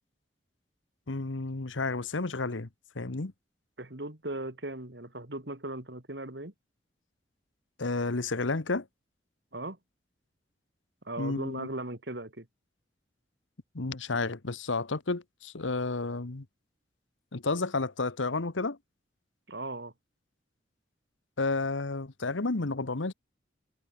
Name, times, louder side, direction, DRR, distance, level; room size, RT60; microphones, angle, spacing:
voice 1, 1.1-2.7 2.9-3.3 7.8-8.9 11.2-11.7 13.7-16.4 17.3-18.8 21.4-23.1, left 3 dB, 85° left, 1.2 m, -31 dB
voice 2, 3.8-6.5 9.5-9.8 11.0-12.5 19.5-19.9, right 2 dB, 60° right, 3.0 m, -38 dB
head